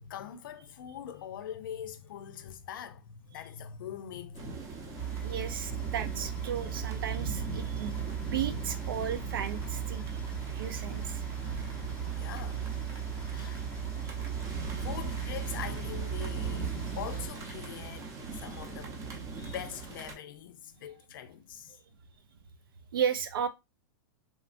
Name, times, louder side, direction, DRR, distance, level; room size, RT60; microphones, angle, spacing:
voice 1, 0.0-5.1 12.2-12.6 13.3-13.7 14.8-19.0 19.4-21.8, left 10 dB, 75° left, 0.5 m, -43 dB
sound 1, 4.3-20.1, right 3 dB, 30° right, 0.7 m, -40 dB
sound 2, 5.0-17.3, right 8 dB, 10° left, 0.5 m, -37 dB
voice 2, 5.2-7.9 8.2-10.0 10.5-11.2 14.0-14.1 14.7-14.8 18.4-18.5 19.3-19.4 22.9-23.5, right 8 dB, 85° right, 0.5 m, -34 dB
3.1 x 2.1 x 2.5 m
hypercardioid pair, 135°, 11 cm